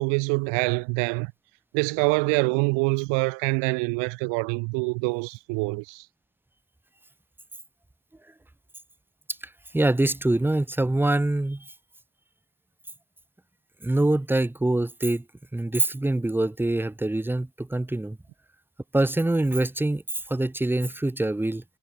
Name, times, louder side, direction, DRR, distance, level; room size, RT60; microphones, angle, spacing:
voice 1, 0.0-1.3 1.7-6.0, right 32 dB, 65° right, 0.6 m, -25 dB
voice 2, 9.4-11.7 13.8-15.2 15.5-18.2 18.9-21.6, right 2 dB, 5° right, 1.0 m, -24 dB
cardioid pair, 135°, 47 cm